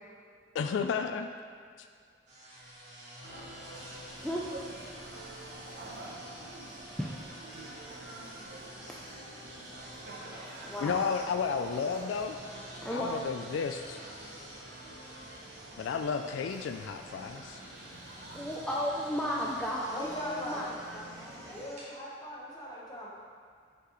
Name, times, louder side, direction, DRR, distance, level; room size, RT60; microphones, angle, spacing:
voice 1, 0.5-1.3 10.8-12.4 12.9-14.0 15.8-17.6, left 6 dB, 85° left, 7 dB, 0.3 m, -32 dB
sound 1, 2.3-21.9, equal, 40° right, 1.5 m, -50 dB
sound 2, 3.2-21.7, right 2 dB, 55° right, 0.9 m, -48 dB
voice 2, 10.6-11.1 12.8-13.2 18.3-20.7 20.9-21.6, equal, 5° left, -5 dB, 0.4 m, -34 dB
voice 3, 19.9-20.8 21.4-23.1, equal, 20° left, -5 dB, 1.0 m, -40 dB
6.1 x 5.5 x 3.0 m, 2.1 s
head